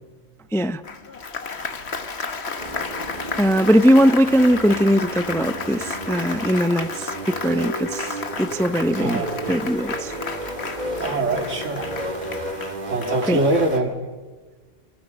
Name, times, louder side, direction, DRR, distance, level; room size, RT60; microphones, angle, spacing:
Applause, 0.8-13.6, left 4 dB, 60° left, 1.7 m, -32 dB
sound 1, 2.6-13.8, right 1 dB, 35° right, 2.4 m, -33 dB
voice 1, 3.4-10.1 13.3-13.4, equal, 5° left, 0.4 m, -20 dB
voice 2, 9.0-9.4 11.0-12.0 12.8-14.0, right 2 dB, 75° right, 2.9 m, -23 dB
29.0 x 26.5 x 5.3 m
omnidirectional pair, 1.3 m